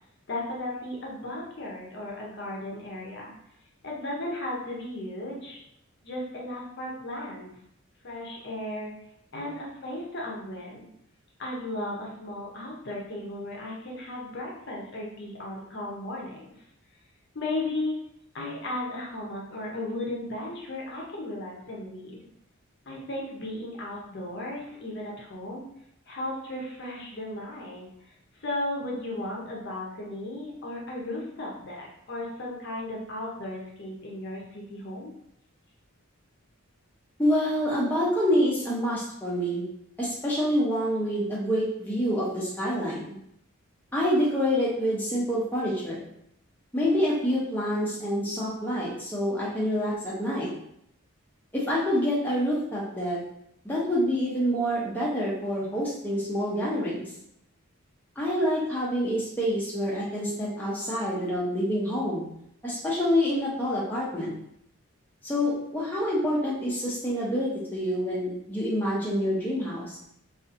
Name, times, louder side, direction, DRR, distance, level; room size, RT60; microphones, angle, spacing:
voice 1, 0.3-3.3 3.8-5.6 6.0-7.5 8.0-8.9 9.3-10.9 11.4-16.5 17.3-18.0 18.3-22.2 22.9-25.6 26.1-27.9 28.4-35.1, left 1 dB, 50° left, -3 dB, 0.6 m, -35 dB
voice 2, 37.2-39.6 40.0-43.1 43.9-46.0 46.7-50.5 51.5-53.2 53.6-57.1 58.2-62.2 62.6-64.3 65.2-70.0, equal, 10° left, -7 dB, 0.5 m, -27 dB
2.6 x 2.4 x 2.5 m, 0.74 s
head